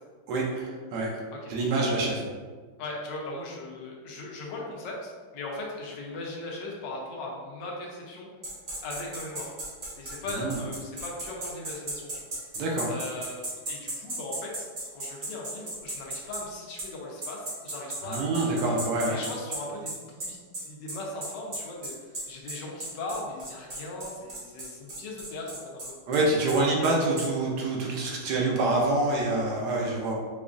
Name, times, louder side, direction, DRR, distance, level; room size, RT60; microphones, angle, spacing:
voice 1, 0.3-1.2 1.5-2.3 10.3-10.6 12.5-12.9 18.0-19.2 26.1-30.1, right 2 dB, 70° right, -2 dB, 1.2 m, -26 dB
voice 2, 2.8-8.3 8.8-9.5 9.9-12.1 12.9-14.6 14.9-18.6 19.0-20.4 20.7-25.9 26.4-27.2, left 2 dB, 80° left, -2 dB, 1.4 m, -38 dB
sound 1, 8.4-16.4 16.8-16.9 17.2-27.3, right 1 dB, 55° right, 0.4 m, -36 dB
4.9 x 2.4 x 2.5 m, 1.5 s
omnidirectional pair, 1.9 m